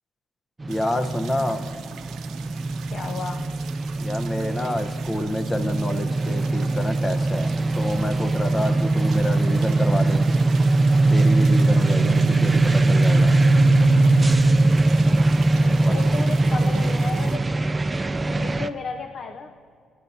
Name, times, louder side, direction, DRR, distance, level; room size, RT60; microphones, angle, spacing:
sound 1, 0.6-18.7, right 2 dB, 20° right, 0.4 m, -20 dB
voice 1, 0.7-1.6 4.0-10.2 11.1-13.4 15.8-16.0, left 1 dB, 20° left, 8 dB, 0.8 m, -28 dB
sound 2, 0.7-17.4, right 9 dB, 75° right, 0.6 m, -45 dB
voice 2, 2.9-3.5 11.9-12.7 15.6-17.5 18.3-19.5, left 4 dB, 55° left, 6 dB, 0.5 m, -34 dB
24.5 x 9.9 x 2.7 m, 2.3 s
cardioid pair, 90°, 0 cm